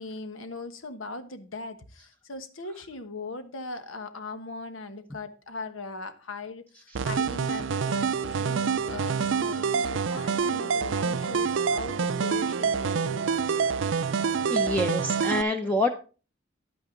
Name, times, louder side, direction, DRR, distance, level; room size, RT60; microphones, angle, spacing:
voice 1, 0.0-13.6, left 3 dB, 90° left, 1.3 m, -39 dB
sound 1, 6.9-15.4, right 6 dB, 70° right, 0.4 m, -27 dB
voice 2, 14.5-15.9, left 1 dB, 10° left, 0.7 m, -26 dB
10.5 x 8.8 x 3.8 m
head